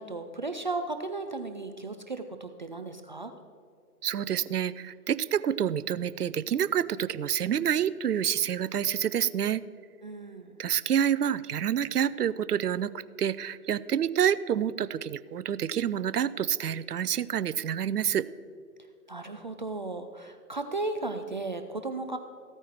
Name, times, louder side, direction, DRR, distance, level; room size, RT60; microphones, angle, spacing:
voice 1, 0.0-3.3 10.0-10.6 19.1-22.2, right 3 dB, 35° right, 7 dB, 0.4 m, -35 dB
voice 2, 4.0-9.6 10.6-12.9 13.2-18.2, right 9 dB, 80° right, 18 dB, 0.6 m, -28 dB
15.5 x 8.9 x 4.5 m, 2.2 s
figure-of-eight pair, 135°, 46 cm